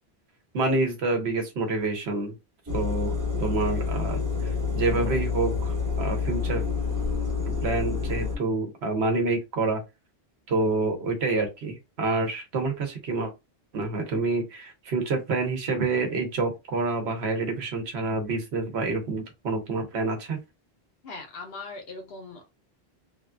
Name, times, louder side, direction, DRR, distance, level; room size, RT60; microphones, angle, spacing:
voice 1, 0.5-2.3 2.7-3.1 3.4-6.6 7.6-9.8 10.5-13.3 13.7-20.4, right 3 dB, 80° right, 1.1 m, -27 dB
sound 1, 2.7-8.4, left 5 dB, 20° right, 0.8 m, -28 dB
voice 2, 21.0-22.5, left 3 dB, 70° left, 1.1 m, -40 dB
3.3 x 2.5 x 2.2 m
omnidirectional pair, 1.1 m